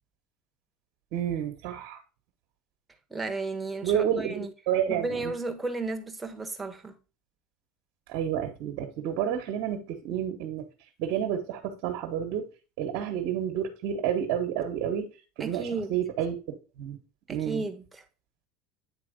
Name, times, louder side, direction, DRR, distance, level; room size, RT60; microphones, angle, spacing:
voice 1, 1.1-2.0 3.8-5.3 8.1-10.6 11.0-12.4 12.8-15.1 15.4-17.0 17.3-17.6, right 9 dB, 65° right, 1.4 m, -30 dB
voice 2, 3.1-4.5 4.9-6.9 15.4-15.9 17.3-18.0, right 3 dB, 15° right, 1.4 m, -33 dB
9.0 x 3.4 x 5.1 m
supercardioid pair, 100°, 0 cm